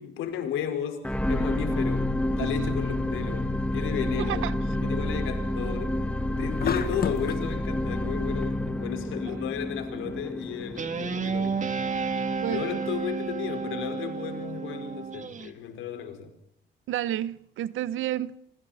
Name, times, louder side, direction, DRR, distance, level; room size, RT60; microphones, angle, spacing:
voice 1, 0.0-4.5 4.8-6.0 6.4-11.6 12.5-16.3, left 9 dB, 90° left, 5.0 m, -34 dB
sound 1, 1.0-13.4 14.0-14.1, left 1 dB, 5° left, 2.4 m, -30 dB
voice 2, 4.2-4.6 9.3-9.4 9.9-10.2 12.4-12.8 16.9-18.4, right 12 dB, 80° right, 1.2 m, -31 dB
sound 2, 6.6-7.5, left 7 dB, 50° left, 1.7 m, -30 dB
Guitar, 10.8-15.5, right 5 dB, 40° right, 2.3 m, -31 dB
28.0 x 25.5 x 4.4 m
cardioid pair, 90°, 20 cm